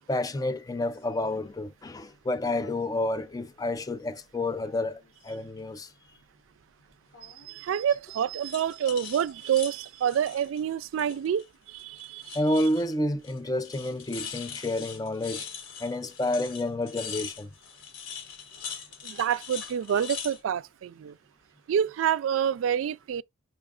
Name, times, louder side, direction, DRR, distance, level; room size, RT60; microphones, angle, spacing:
voice 1, 0.0-5.9 12.3-15.5 15.8-17.5, left 1 dB, 20° left, 0.4 m, -29 dB
sound 1, 0.8-1.0 2.5-2.7 3.1-4.0 4.5-5.4 7.1-7.6 8.4-11.5 11.8-12.9 13.2-13.4 13.6-20.4, left 7 dB, 85° left, 1.1 m, -42 dB
voice 2, 7.2-12.4 19.0-21.1 21.7-23.2, right 9 dB, 85° right, 0.3 m, -28 dB
5.4 x 2.4 x 3.6 m
head